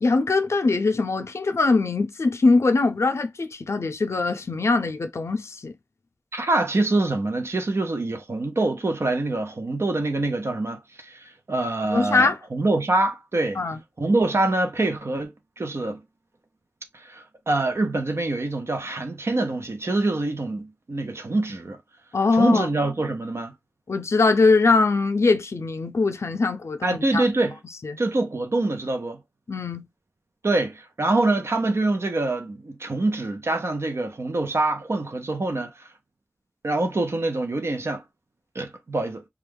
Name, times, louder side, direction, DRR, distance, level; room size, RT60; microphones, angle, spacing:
voice 1, 0.0-5.7 11.8-12.4 13.6-13.8 22.1-22.7 23.9-27.2 27.8-28.0 29.5-29.9, left 3 dB, 80° left, 0.4 m, -22 dB
voice 2, 6.3-13.6 14.0-16.0 16.9-21.8 22.3-23.5 26.8-27.6 28.0-29.2 30.4-35.9 36.6-38.0 38.5-39.2, right 2 dB, 70° right, 0.6 m, -25 dB
2.4 x 2.2 x 3.3 m
wide cardioid pair, 50°, 5 cm